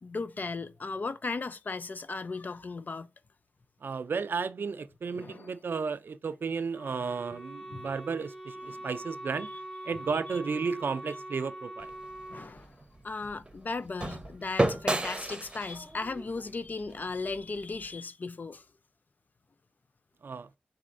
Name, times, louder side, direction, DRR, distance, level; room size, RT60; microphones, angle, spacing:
voice 1, 0.0-3.1 5.1-5.5 7.7-7.9 8.7-8.9 12.3-12.7 13.0-18.6, left 3 dB, 50° left, 0.4 m, -36 dB
voice 2, 3.8-9.5 9.9-11.9 20.2-20.5, right 5 dB, 70° right, 0.3 m, -33 dB
Wind instrument woodwind instrument, 6.7-12.5, right 1 dB, 20° left, 0.8 m, -43 dB
sound 1, 11.8-17.9, right 2 dB, 25° right, 0.7 m, -34 dB
4.2 x 4.1 x 2.5 m
wide cardioid pair, 65°, 4 cm